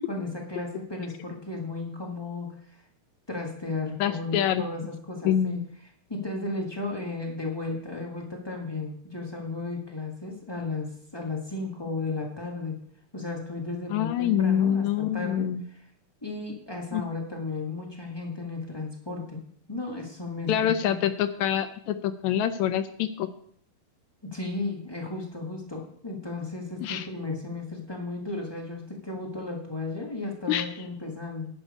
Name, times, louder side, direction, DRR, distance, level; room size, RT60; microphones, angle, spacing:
voice 1, 0.1-2.8 3.3-5.6 6.1-12.8 13.1-15.8 16.2-19.4 19.7-21.0 24.2-31.5, left 3 dB, 40° left, -1 dB, 0.3 m, -34 dB
voice 2, 4.0-4.6 5.2-5.6 13.9-15.6 16.9-17.0 20.5-23.3 26.8-27.1 30.5-30.7, left 10 dB, 75° left, 10 dB, 1.8 m, -25 dB
11.0 x 9.0 x 5.3 m, 0.65 s
omnidirectional pair, 3.5 m